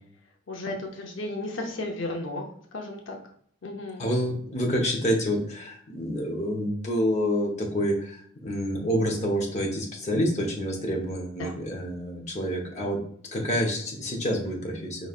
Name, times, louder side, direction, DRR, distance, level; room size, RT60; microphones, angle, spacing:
voice 1, 0.5-3.2 3.6-4.1 11.4-11.5, left 2 dB, 75° left, 2 dB, 0.6 m, -34 dB
voice 2, 4.0-13.0 13.3-15.1, equal, 35° left, 0 dB, 0.8 m, -28 dB
5.0 x 3.1 x 2.4 m, 0.62 s
head